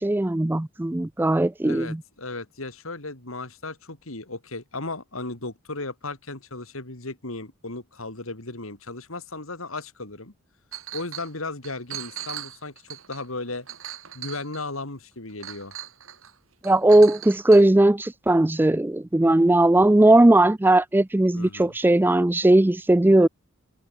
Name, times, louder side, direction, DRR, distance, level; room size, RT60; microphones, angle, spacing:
voice 1, 0.0-2.0 16.6-23.3, right 1 dB, 10° right, 0.4 m, -18 dB
voice 2, 1.6-10.3 10.9-13.7 14.1-15.7 21.3-21.8, left 2 dB, 80° left, 3.6 m, -35 dB
Chink clink, 10.7-11.3 11.6-14.8 15.4-16.3 16.6-17.6, right 11 dB, 80° right, 8.0 m, -39 dB
head